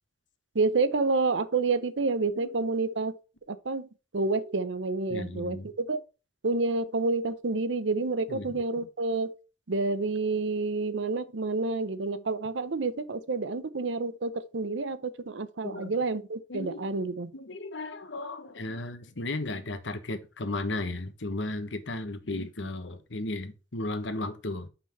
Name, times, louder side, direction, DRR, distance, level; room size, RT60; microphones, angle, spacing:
voice 1, 0.5-3.2 3.5-3.9 4.1-6.0 6.4-9.4 9.7-17.3, right 3 dB, 85° right, 0.8 m, -29 dB
voice 2, 5.1-5.7 8.3-8.9 15.6-16.0 16.5-16.9 17.3-24.7, left 2 dB, 85° left, 1.2 m, -35 dB
5.9 x 5.7 x 4.4 m
head